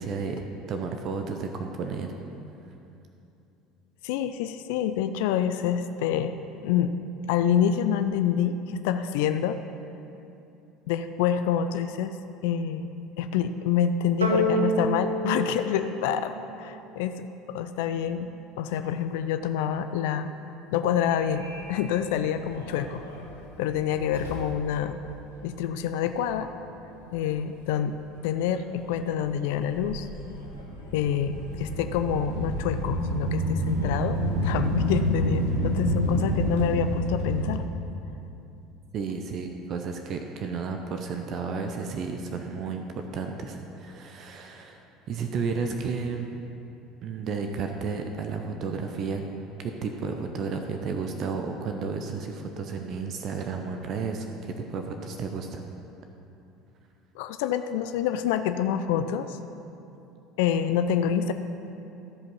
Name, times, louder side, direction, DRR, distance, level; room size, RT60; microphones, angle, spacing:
voice 1, 0.0-2.1 38.9-46.3 47.0-49.2 49.6-55.6, right 5 dB, 50° right, 4 dB, 0.7 m, -32 dB
voice 2, 4.0-6.4 6.6-6.9 7.3-9.6 10.9-12.1 12.4-12.9 13.2-18.3 18.5-20.3 20.7-23.0 23.6-25.0 25.4-26.5 27.1-28.0 28.2-30.1 30.9-37.6 57.2-59.4 60.4-61.3, left 9 dB, 65° left, 9 dB, 0.4 m, -27 dB
sound 1, 14.2-16.8, right 1 dB, 90° right, 0.6 m, -28 dB
Subway metro underground, 21.1-36.7, left 1 dB, 90° left, 1.2 m, -36 dB
sound 2, 30.9-37.6, right 1 dB, 65° right, 1.1 m, -29 dB
13.5 x 5.2 x 5.5 m, 2.8 s
figure-of-eight pair, 65°, 0 cm